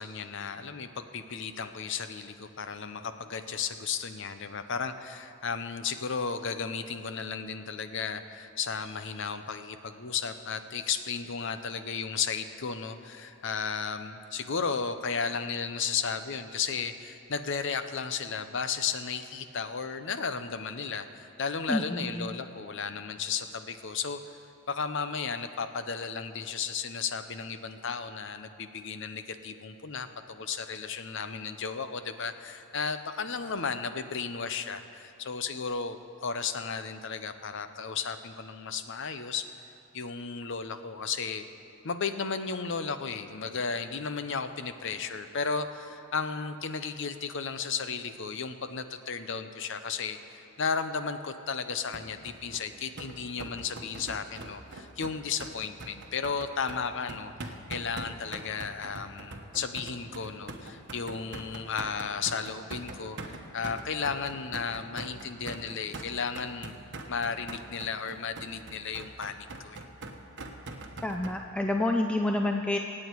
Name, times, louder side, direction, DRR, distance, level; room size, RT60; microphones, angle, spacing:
voice 1, 0.0-24.2 24.7-39.5 39.9-41.5 41.8-66.8 67.1-69.8, left 5 dB, 60° left, 10 dB, 0.7 m, -34 dB
voice 2, 21.7-22.3 71.0-72.8, left 1 dB, 5° left, 3 dB, 0.5 m, -28 dB
sound 1, 51.9-71.3, right 2 dB, 55° right, 1.2 m, -42 dB
25.5 x 8.7 x 4.7 m, 2.9 s
head